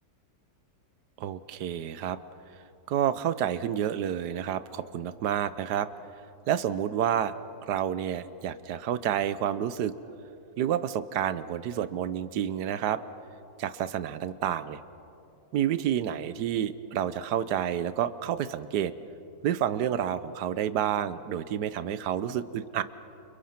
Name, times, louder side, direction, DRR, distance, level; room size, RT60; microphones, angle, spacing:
voice 1, 1.2-2.2 2.9-5.9 6.5-7.3 7.7-9.9 10.6-13.0 13.6-14.8 15.5-18.9 19.4-22.8, right 10 dB, 65° right, 14 dB, 1.3 m, -29 dB
30.0 x 28.5 x 5.9 m, 2.8 s
omnidirectional pair, 2.1 m